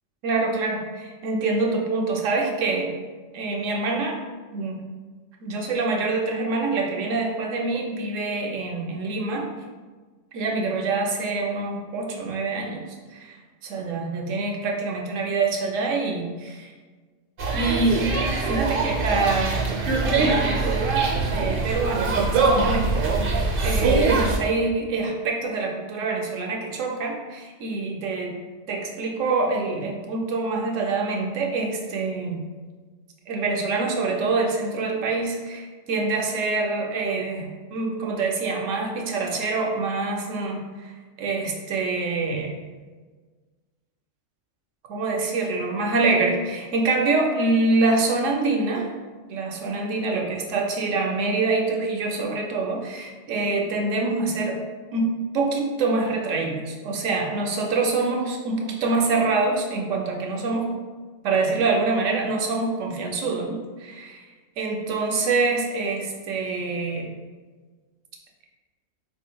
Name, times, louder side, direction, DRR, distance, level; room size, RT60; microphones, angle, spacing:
voice 1, 0.2-2.9 3.3-4.2 4.5-4.8 5.4-9.5 10.3-12.8 13.1-16.7 17.5-19.8 20.1-23.3 23.6-28.3 28.7-32.4 33.3-37.5 37.7-40.9 41.2-42.6 44.9-48.9 49.3-54.6 54.9-60.7 61.2-64.3 64.6-67.1, right 3 dB, 80° right, 1 dB, 1.0 m, -25 dB
sound 1, 17.4-24.4, right 3 dB, 55° right, 0.7 m, -23 dB
3.7 x 3.7 x 2.2 m, 1.4 s
omnidirectional pair, 1.4 m